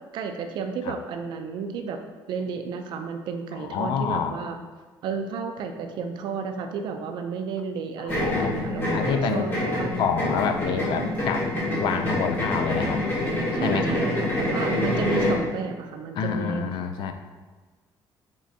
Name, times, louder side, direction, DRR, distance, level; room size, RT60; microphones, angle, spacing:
voice 1, 0.1-2.0 2.3-4.6 5.0-9.9 13.5-16.6, right 5 dB, 65° right, 6 dB, 0.4 m, -32 dB
voice 2, 3.6-4.4 8.0-9.5 10.0-11.5 11.8-13.0 13.5-13.9 16.2-17.1, left 6 dB, 65° left, 7 dB, 0.4 m, -27 dB
spinning bowl, 8.1-15.4, left 1 dB, 25° left, 1.3 m, -26 dB
5.1 x 3.6 x 2.7 m, 1.4 s
cardioid pair, 175°, 8 cm